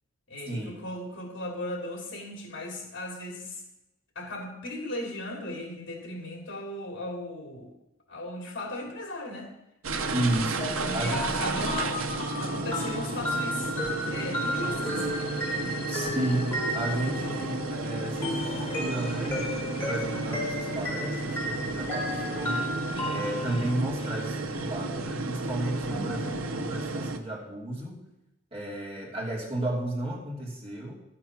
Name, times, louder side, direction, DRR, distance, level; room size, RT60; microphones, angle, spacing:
voice 1, 0.3-3.6 4.1-7.7 8.1-9.5 10.8-13.7 14.0-15.2 15.7-15.9, left 1 dB, 65° left, 1 dB, 2.9 m, -37 dB
sound 1, 9.8-27.2, right 3 dB, 80° right, 0.9 m, -32 dB
sound 2, 10.1-17.6 18.2-23.9 25.9-26.7, left 1 dB, 10° left, 3.2 m, -34 dB
voice 2, 10.1-11.2 15.9-22.7 23.0-28.0 28.5-30.9, right 1 dB, 30° right, -3 dB, 2.7 m, -33 dB
sound 3, 14.1-25.0, left 4 dB, 25° left, 0.5 m, -45 dB
12.5 x 7.6 x 5.9 m, 0.89 s
head